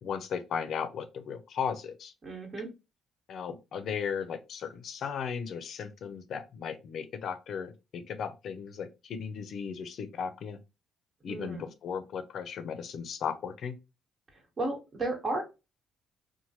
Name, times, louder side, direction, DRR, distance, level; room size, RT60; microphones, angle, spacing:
voice 1, 0.0-2.1 3.3-10.6 11.2-13.8, left 7 dB, 65° left, 0.4 m, -36 dB
voice 2, 2.2-2.7 11.3-11.6 14.6-15.4, right 2 dB, 40° right, 1.3 m, -33 dB
3.0 x 2.1 x 2.8 m
cardioid pair, 90°, 0 cm